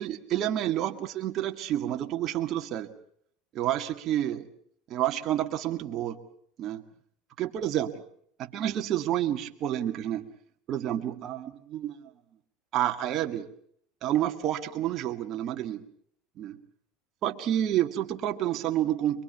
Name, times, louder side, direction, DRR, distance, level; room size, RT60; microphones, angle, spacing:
voice 1, 0.0-2.9 3.5-4.4 4.9-6.2 6.6-6.8 7.4-8.0 8.4-10.3 10.7-12.0 12.7-13.5 14.0-15.8 16.4-16.6 17.2-19.2, right 12 dB, 50° right, 4 dB, 2.0 m, -29 dB
23.5 x 23.0 x 7.0 m, 0.66 s
supercardioid pair, 105°, 0 cm